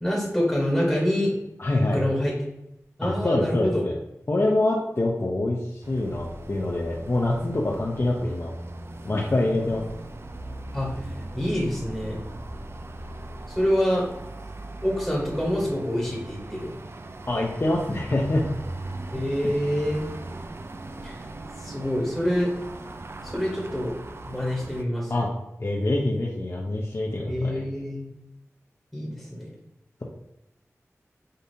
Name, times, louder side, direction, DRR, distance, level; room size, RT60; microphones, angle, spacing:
voice 1, 0.0-1.3 1.9-2.3 3.0-3.8 10.7-10.9 11.3-12.2 13.5-14.0 14.8-16.7 19.1-20.0 21.0-21.1 21.6-22.5 23.2-23.9 24.2-25.1 27.3-28.1 28.9-29.5, equal, 5° left, -4 dB, 1.4 m, -26 dB
voice 2, 1.6-2.0 3.0-3.9 4.3-8.5 9.0-10.0 17.3-18.5 25.1-25.3 25.6-27.6, left 2 dB, 45° left, -2 dB, 0.6 m, -25 dB
sound 1, 5.8-24.8, right 2 dB, 50° right, 0.3 m, -39 dB
5.1 x 2.7 x 2.7 m, 0.85 s
wide cardioid pair, 55°, 6 cm